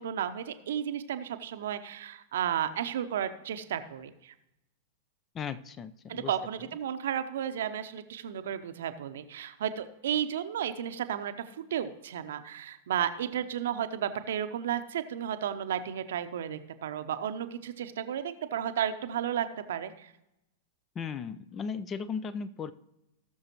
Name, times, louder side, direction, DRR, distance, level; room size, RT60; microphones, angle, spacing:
voice 1, 0.0-4.3 6.1-20.1, right 9 dB, 65° right, 10 dB, 0.8 m, -33 dB
voice 2, 5.3-6.3 6.6-6.7 20.9-22.7, left 6 dB, 25° left, 15 dB, 0.5 m, -36 dB
18.5 x 6.6 x 3.0 m, 0.89 s
figure-of-eight pair, 95°, 0 cm